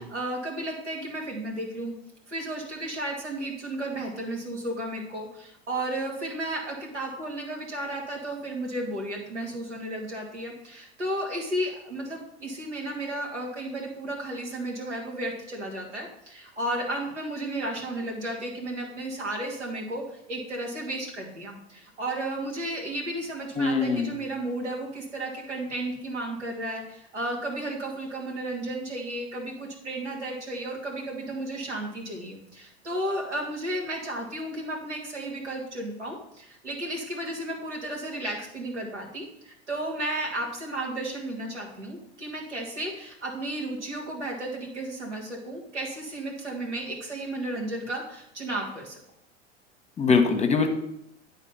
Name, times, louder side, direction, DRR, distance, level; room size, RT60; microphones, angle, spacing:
voice 1, 0.0-1.9 2.3-49.0, right 1 dB, 90° right, -1 dB, 2.2 m, -33 dB
voice 2, 23.6-24.1 50.0-50.7, left 5 dB, 20° left, 6 dB, 1.1 m, -22 dB
9.6 x 4.0 x 5.6 m, 0.77 s
hypercardioid pair, 85°, 34 cm